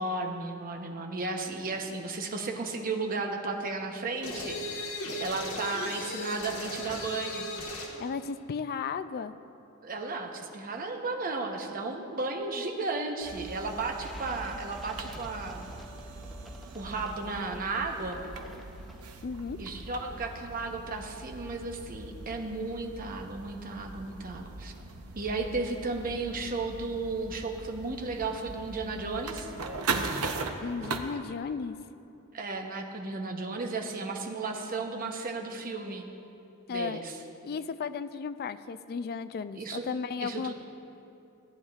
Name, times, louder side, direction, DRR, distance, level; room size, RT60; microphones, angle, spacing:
voice 1, 0.0-7.5 9.8-15.7 16.7-18.2 19.6-24.7 25.2-29.5 32.3-36.1 36.7-37.1 39.6-39.9 40.2-40.5, right 3 dB, 40° right, 3 dB, 0.9 m, -34 dB
sound 1, 4.2-8.0, left 1 dB, 75° left, 1.6 m, -36 dB
voice 2, 8.0-9.3 19.2-19.6 30.6-31.8 36.7-37.0 37.4-40.5, left 5 dB, 45° left, 12 dB, 0.3 m, -34 dB
sound 2, 13.2-31.0, right 3 dB, 85° right, 0.7 m, -40 dB
sound 3, 13.9-19.4, equal, ahead, 0.6 m, -52 dB
17.0 x 9.7 x 2.4 m, 2.7 s
head